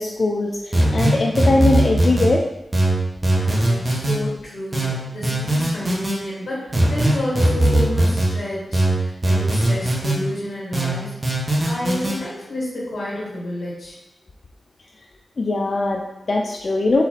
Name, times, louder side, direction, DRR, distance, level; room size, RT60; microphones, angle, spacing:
voice 1, 0.0-2.4 15.4-17.0, left 2 dB, 55° left, 0 dB, 0.4 m, -21 dB
sound 1, 0.7-2.3 2.7-4.2 4.7-6.1 6.7-8.3 8.7-10.2 10.7-12.1, right 1 dB, 40° right, 1.4 m, -19 dB
voice 2, 3.3-11.3 11.6-14.0, left 1 dB, 80° left, -7 dB, 1.7 m, -30 dB
4.7 x 3.8 x 2.9 m, 0.93 s
cardioid pair, 50°, 0 cm